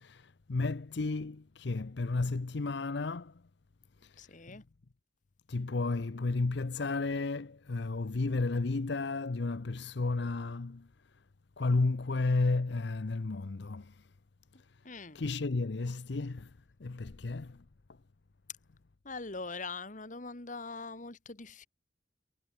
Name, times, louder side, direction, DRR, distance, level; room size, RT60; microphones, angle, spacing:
voice 1, 0.0-3.4 4.0-4.6 5.5-10.9 11.6-14.1 14.7-14.8 15.1-16.5 16.8-17.6, left 3 dB, 60° left, 0.7 m, -33 dB
voice 2, 4.2-4.6 14.8-15.2 19.0-21.7, left 3 dB, 40° left, 1.6 m, -42 dB
head